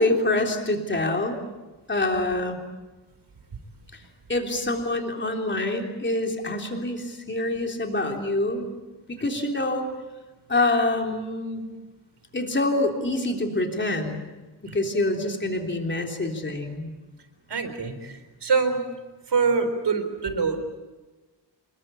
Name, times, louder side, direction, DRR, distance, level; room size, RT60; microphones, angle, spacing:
voice 1, 0.0-1.4 1.9-2.6 4.3-8.7 9.1-9.9 10.5-11.7 12.3-14.2 14.6-16.9, left 2 dB, 25° left, 2 dB, 3.4 m, -26 dB
voice 2, 17.5-18.8 19.3-20.6, right 5 dB, 65° right, 8 dB, 4.2 m, -25 dB
27.5 x 22.0 x 8.6 m, 1.2 s
wide cardioid pair, 175°, 43 cm